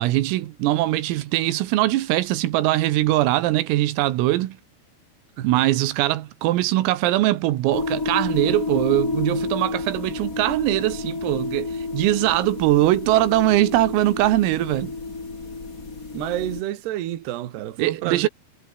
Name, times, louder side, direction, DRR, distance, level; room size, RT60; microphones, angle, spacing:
voice 1, 0.0-4.6 5.4-14.9 17.8-18.3, right 16 dB, 90° right, 4.1 m, -21 dB
sound 1, 7.7-16.6, left 3 dB, 20° left, 2.8 m, -30 dB
voice 2, 16.1-18.3, right 13 dB, 65° right, 3.5 m, -29 dB
omnidirectional pair, 5.9 m